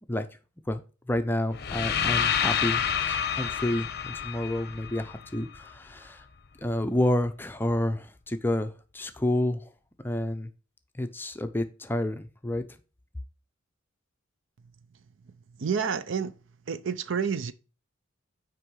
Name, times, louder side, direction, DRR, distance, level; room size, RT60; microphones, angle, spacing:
voice 1, 1.1-6.2 6.6-9.7 10.0-10.5 11.0-12.6, left 1 dB, 10° left, 0.5 m, -29 dB
sound 1, 1.5-5.6, left 8 dB, 50° left, 0.6 m, -28 dB
voice 2, 15.2-16.4 16.7-17.5, right 6 dB, 65° right, 0.5 m, -30 dB
6.3 x 4.7 x 4.6 m
head